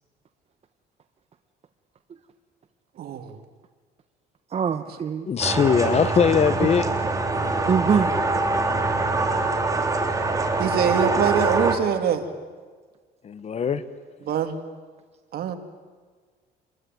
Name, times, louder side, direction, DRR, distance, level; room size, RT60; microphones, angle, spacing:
voice 1, 3.0-3.3 7.3-7.6 10.6-12.3 14.2-14.5 15.3-15.5, right 8 dB, 65° right, 2.8 m, -24 dB
voice 2, 4.5-5.3 6.6-6.7 7.7-8.1 8.9-9.3 15.5-15.6, right 7 dB, 40° right, 1.3 m, -24 dB
voice 3, 5.3-6.9 13.2-13.8, left 7 dB, 40° left, 1.4 m, -21 dB
sound 1, 5.4-11.8, right 3 dB, 20° right, 3.5 m, -24 dB
27.5 x 22.5 x 9.4 m
cardioid pair, 110°, 17 cm